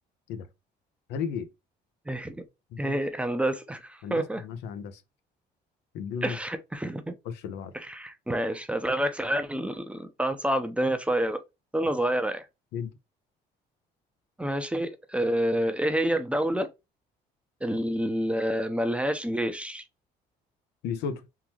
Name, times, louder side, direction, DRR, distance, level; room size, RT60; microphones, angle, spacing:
voice 1, 1.1-1.5 2.7-3.0 4.0-4.9 5.9-6.4 7.4-7.7 12.7-12.9 20.8-21.2, left 6 dB, 85° left, 0.8 m, -33 dB
voice 2, 2.1-2.4 2.8-4.4 6.2-7.2 7.7-11.4 11.7-12.5 14.4-16.7 17.6-19.8, right 1 dB, 5° right, 0.7 m, -28 dB
3.8 x 3.0 x 3.0 m
cardioid pair, 110°, 17 cm